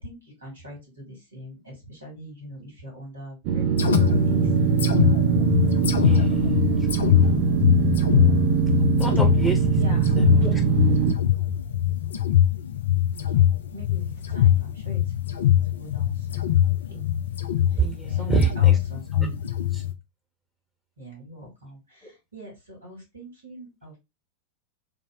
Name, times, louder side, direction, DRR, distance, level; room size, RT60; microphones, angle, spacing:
voice 1, 0.0-4.7 9.7-10.1 10.5-10.7 13.1-15.0 15.7-16.5 16.9-17.1 17.7-19.1 21.0-24.0, equal, 80° right, 0 dB, 2.1 m, -42 dB
sound 1, 3.4-11.1, right 8 dB, 45° right, 0.4 m, -22 dB
sound 2, 3.8-19.9, left 11 dB, 65° left, 0.4 m, -22 dB
voice 2, 5.9-6.4 6.9-7.0 9.0-9.6 9.9-10.5 17.8-18.8 19.1-19.4 19.7-19.8, right 4 dB, 5° left, 2 dB, 0.9 m, -27 dB
3.4 x 2.0 x 3.8 m, 0.24 s
figure-of-eight pair, 90°, 0 cm